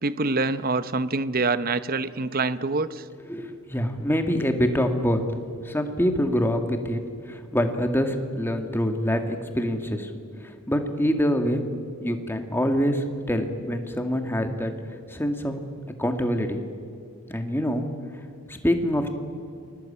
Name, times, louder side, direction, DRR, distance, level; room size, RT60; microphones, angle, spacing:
voice 1, 0.0-3.0, right 3 dB, 40° right, 13 dB, 0.9 m, -25 dB
voice 2, 3.3-5.2 5.6-7.0 7.3-10.1 10.4-11.6 12.0-14.7 15.1-15.6 16.0-16.6 17.3-17.9 18.5-19.1, equal, 10° left, 5 dB, 1.9 m, -25 dB
29.5 x 21.0 x 8.6 m, 2.4 s
head